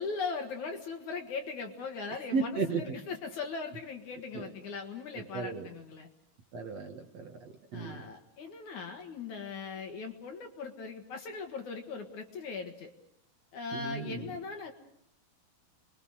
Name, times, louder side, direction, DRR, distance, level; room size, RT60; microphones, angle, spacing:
voice 1, 0.0-6.1 7.7-12.9 13.5-14.7, left 4 dB, 55° left, 4 dB, 2.8 m, -39 dB
voice 2, 2.1-3.0 4.3-4.5 5.1-5.7 6.5-8.0 13.7-14.3, right 4 dB, 50° right, 3 dB, 2.6 m, -35 dB
29.0 x 22.5 x 6.4 m, 0.75 s
omnidirectional pair, 4.5 m